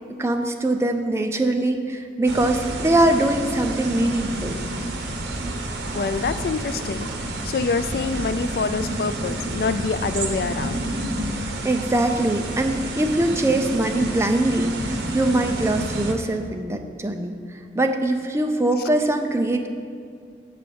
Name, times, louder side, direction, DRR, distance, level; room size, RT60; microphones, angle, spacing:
voice 1, 0.2-4.6 11.2-19.7, right 1 dB, 15° right, 5 dB, 0.4 m, -22 dB
sound 1, 2.2-16.1, right 1 dB, 85° right, 0.9 m, -29 dB
voice 2, 5.9-7.1 7.4-10.8, left 4 dB, 55° left, 12 dB, 0.3 m, -26 dB
7.3 x 4.9 x 6.8 m, 2.2 s
head